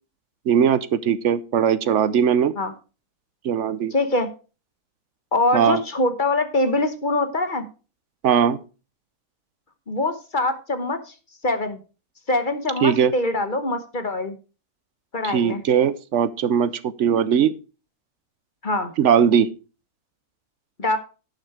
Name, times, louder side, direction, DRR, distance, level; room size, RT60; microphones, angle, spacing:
voice 1, 0.5-2.5 3.4-3.9 5.5-5.8 8.2-8.6 12.8-13.1 15.2-17.5 19.0-19.5, right 8 dB, 60° right, 15 dB, 0.9 m, -19 dB
voice 2, 3.9-4.3 5.3-7.6 9.9-11.1 11.4-11.8 12.3-14.4 15.1-15.6 18.6-18.9 20.8-21.0, left 2 dB, 35° left, 9 dB, 1.1 m, -23 dB
11.5 x 6.6 x 4.8 m, 0.34 s
omnidirectional pair, 1.6 m